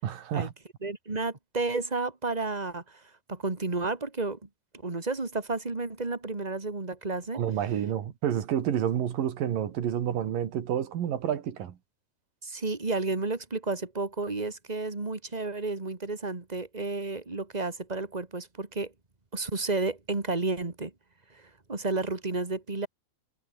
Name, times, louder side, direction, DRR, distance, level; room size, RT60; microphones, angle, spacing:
voice 1, 0.0-0.5 7.3-11.8, right 10 dB, 70° right, 3.6 m, -29 dB
voice 2, 0.8-3.0 3.3-4.4 4.7-7.4 12.4-18.9 19.3-20.9 21.3-22.9, right 3 dB, 20° right, 1.1 m, -32 dB
omnidirectional pair, 4.3 m